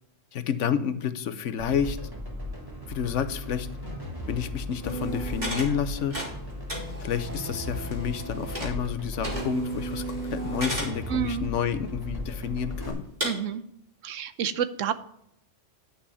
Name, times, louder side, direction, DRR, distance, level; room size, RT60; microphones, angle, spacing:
voice 1, 0.3-2.0 2.9-3.7 4.3-6.1 7.0-13.0, left 8 dB, 75° left, 12 dB, 1.1 m, -29 dB
sound 1, 1.6-12.9, left 1 dB, 15° right, 2.9 m, -37 dB
sound 2, 4.8-5.7 6.0-8.9 9.2-11.0 11.5-11.6 12.3-12.4 13.2-13.3, right 1 dB, 35° right, 3.5 m, -34 dB
voice 2, 11.1-11.5 13.2-13.6 14.0-14.9, right 8 dB, 85° right, 13 dB, 1.1 m, -29 dB
10.0 x 6.2 x 5.6 m, 0.75 s
omnidirectional pair, 1.3 m